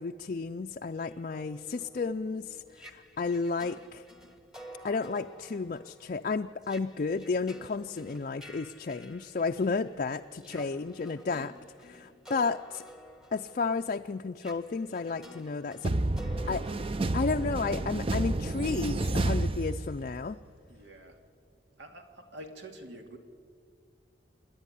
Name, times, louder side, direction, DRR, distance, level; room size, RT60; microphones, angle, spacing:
voice 1, 0.0-4.0 4.8-11.5 11.8-12.8 13.3-15.9 16.5-16.6 17.1-20.4, left 4 dB, 45° left, 5 dB, 0.4 m, -32 dB
sound 1, 1.0-9.9 10.3-18.2, equal, 5° right, 1.3 m, -51 dB
voice 2, 10.4-10.8 11.2-11.5 20.7-21.2 21.8-23.2, right 1 dB, 80° right, 4 dB, 2.4 m, -48 dB
sound 2, 15.8-20.3, right 2 dB, 30° right, 0.6 m, -30 dB
27.5 x 10.5 x 9.9 m, 2.3 s
head